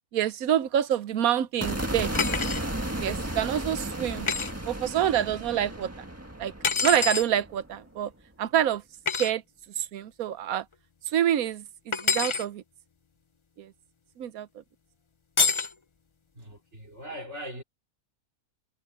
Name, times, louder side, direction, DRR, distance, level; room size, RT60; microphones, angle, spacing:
voice 1, 0.1-2.1 3.0-4.3 4.7-5.9 6.4-6.5 6.8-8.1 8.4-8.8 9.2-9.4 9.8-10.6 11.1-12.6 13.6-13.7 14.2-14.5, right 10 dB, 80° right, 1.2 m, -27 dB
sound 1, 1.6-7.8, right 1 dB, 10° right, 1.8 m, -34 dB
sound 2, 2.1-2.6 4.3-4.5 6.6-7.3 9.1-9.3 11.9-12.4 15.4-15.7, left 5 dB, 35° left, 0.5 m, -26 dB
voice 2, 16.3-17.6, equal, 50° right, 4.5 m, -41 dB
omnidirectional pair, 1.5 m